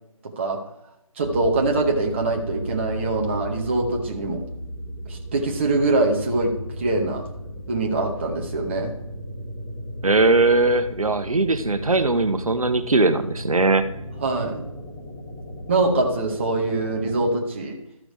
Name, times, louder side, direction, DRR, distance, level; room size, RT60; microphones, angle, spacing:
voice 1, 0.2-0.6 1.2-4.4 5.1-7.3 7.7-8.9 14.2-14.7 15.7-17.8, right 2 dB, 20° right, 1 dB, 1.0 m, -23 dB
sound 1, 1.2-17.2, equal, 15° left, 1.3 m, -36 dB
voice 2, 10.0-13.8, right 3 dB, 80° right, 9 dB, 1.0 m, -20 dB
13.5 x 6.0 x 3.4 m, 0.85 s
figure-of-eight pair, 165°, 18 cm